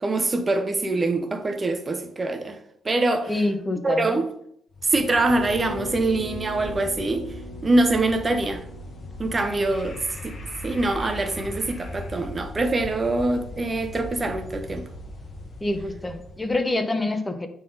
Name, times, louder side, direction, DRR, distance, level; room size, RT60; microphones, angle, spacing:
voice 1, 0.0-2.6 2.8-3.3 3.8-4.3 4.8-7.2 7.6-8.6 9.2-10.4 10.6-14.8, right 2 dB, 30° right, 0.7 m, -24 dB
voice 2, 3.3-4.1 15.6-17.5, left 2 dB, 15° left, 0.8 m, -26 dB
sound 1, 4.7-16.6, left 1 dB, 40° left, 1.2 m, -39 dB
Bass guitar, 5.3-9.7, equal, 80° left, 0.7 m, -39 dB
8.3 x 3.9 x 3.9 m
cardioid pair, 90°, 0 cm